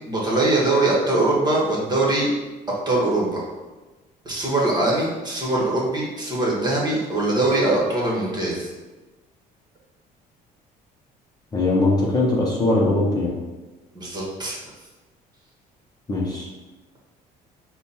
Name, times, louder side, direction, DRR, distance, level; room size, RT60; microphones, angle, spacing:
voice 1, 0.1-2.3 2.8-3.4 4.2-8.7 13.9-14.6, right 2 dB, 25° right, -4 dB, 1.5 m, -22 dB
voice 2, 11.5-13.3 16.1-16.5, left 2 dB, 25° left, -4 dB, 0.9 m, -20 dB
5.2 x 2.4 x 4.2 m, 1.2 s
cardioid pair, 110°, 17 cm